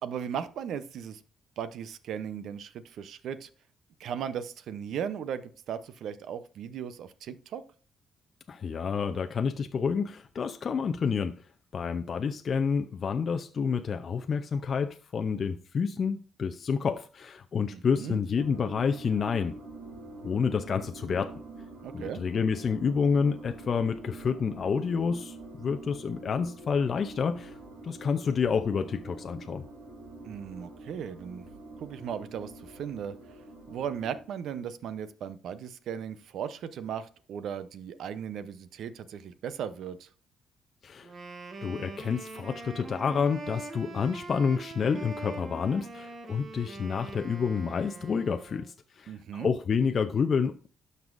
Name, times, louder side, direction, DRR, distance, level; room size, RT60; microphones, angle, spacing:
voice 1, 0.0-1.2 1.6-3.5 4.0-7.6 17.7-18.2 21.8-22.2 30.2-31.5 31.8-33.1 33.7-40.1 49.1-49.5, right 8 dB, 75° right, 0.6 m, -37 dB
voice 2, 8.5-11.4 11.7-19.6 20.2-21.4 21.9-27.6 27.8-29.7 40.8-41.1 41.6-50.7, left 6 dB, 50° left, 0.5 m, -29 dB
sound 1, 18.3-34.2, right 2 dB, 90° right, 2.8 m, -46 dB
Wind instrument woodwind instrument, 41.0-48.7, right 3 dB, 50° right, 1.3 m, -43 dB
12.0 x 5.4 x 2.5 m
cardioid pair, 90°, 0 cm